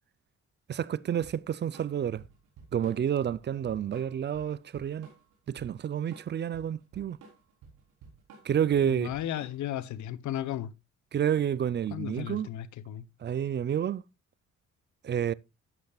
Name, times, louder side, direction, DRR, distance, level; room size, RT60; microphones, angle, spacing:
voice 1, 0.7-2.2 2.7-5.1 5.5-7.2 8.4-9.1 11.1-12.5 13.2-14.0 15.0-15.3, right 9 dB, 35° right, 0.5 m, -29 dB
Drum kit / Drum, 1.2-9.8, right 5 dB, 85° right, 3.8 m, -53 dB
voice 2, 9.0-10.7 11.9-13.0, left 12 dB, 75° left, 0.8 m, -35 dB
12.0 x 8.5 x 2.3 m
cardioid pair, 90°, 30 cm